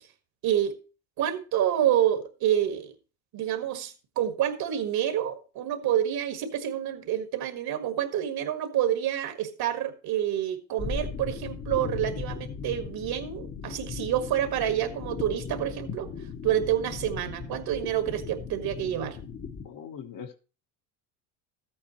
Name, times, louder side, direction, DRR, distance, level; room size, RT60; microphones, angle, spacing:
voice 1, 0.4-0.8 1.2-2.9 3.3-16.1 16.4-19.2, right 11 dB, 55° right, 1.8 m, -28 dB
sound 1, 10.8-19.7, left 6 dB, 30° left, 1.2 m, -37 dB
voice 2, 19.6-20.4, left 7 dB, 50° left, 1.4 m, -41 dB
13.5 x 8.9 x 3.0 m
supercardioid pair, 110°, 44 cm